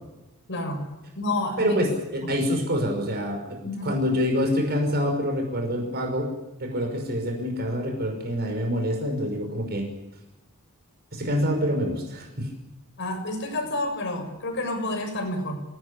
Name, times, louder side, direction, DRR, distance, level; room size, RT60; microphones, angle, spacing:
voice 1, 0.5-0.9 1.1-1.8 2.2-2.4 3.6-3.9 13.0-15.6, left 2 dB, 55° left, 4 dB, 6.8 m, -29 dB
voice 2, 1.6-6.3 6.6-9.8 11.1-12.5, equal, 45° right, 3 dB, 5.7 m, -26 dB
25.5 x 19.0 x 8.6 m, 1.0 s
head